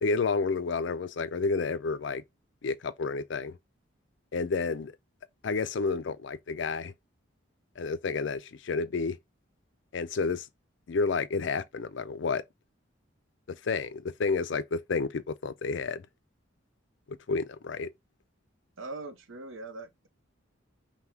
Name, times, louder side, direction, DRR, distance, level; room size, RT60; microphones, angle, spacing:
voice 1, 0.0-2.2 2.6-3.6 4.3-4.9 5.4-6.9 7.8-9.2 9.9-10.5 10.9-12.4 13.6-16.0 17.1-17.9, left 4 dB, 65° left, 0.4 m, -30 dB
voice 2, 18.8-20.1, right 3 dB, 80° right, 0.7 m, -41 dB
5.7 x 2.2 x 3.5 m
head